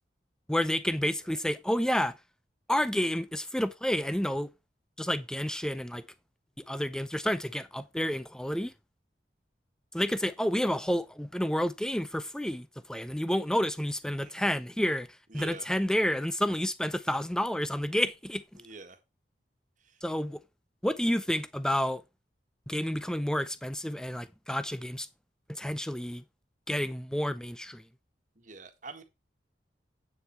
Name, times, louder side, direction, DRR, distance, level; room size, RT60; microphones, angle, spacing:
voice 1, 0.5-2.2 2.7-4.5 5.0-6.1 6.6-8.7 9.9-15.1 15.3-18.6 20.0-20.4 20.8-22.0 22.7-25.1 25.5-26.2 26.7-27.8, equal, 5° left, 0.6 m, -30 dB
voice 2, 14.2-14.5 15.3-15.7 18.5-19.0 19.8-20.0 28.3-29.0, right 3 dB, 45° right, 1.6 m, -46 dB
8.8 x 7.0 x 4.6 m
head